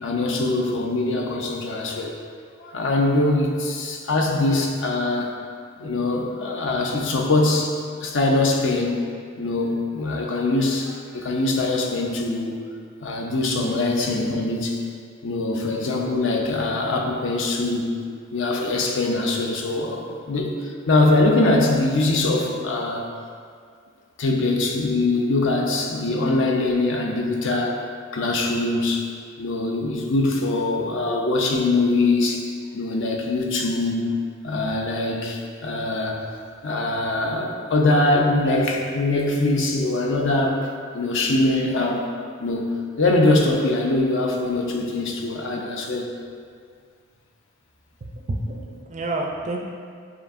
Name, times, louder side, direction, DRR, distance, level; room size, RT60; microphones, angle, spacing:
voice 1, 0.0-2.1 2.6-5.3 5.8-9.0 9.4-12.6 13.0-14.8 15.2-18.0 18.3-23.1 24.2-27.8 28.1-29.1 29.4-32.5 32.7-34.1 34.4-36.2 36.6-40.7 40.9-42.1 42.4-46.1, left 2 dB, 60° left, 0 dB, 0.5 m, -22 dB
voice 2, 48.1-49.6, right 2 dB, 35° right, 0 dB, 0.4 m, -29 dB
6.9 x 2.7 x 2.5 m, 2.1 s
head